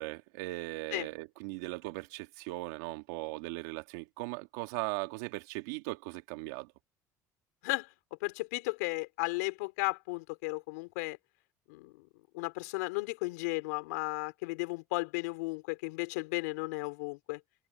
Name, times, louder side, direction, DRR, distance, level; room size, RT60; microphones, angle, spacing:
voice 1, 0.0-6.7, right 22 dB, 85° right, 2.6 m, -38 dB
voice 2, 8.2-11.2 11.7-12.1 12.3-17.4, left 25 dB, 85° left, 3.6 m, -35 dB
supercardioid pair, 80°, 8 cm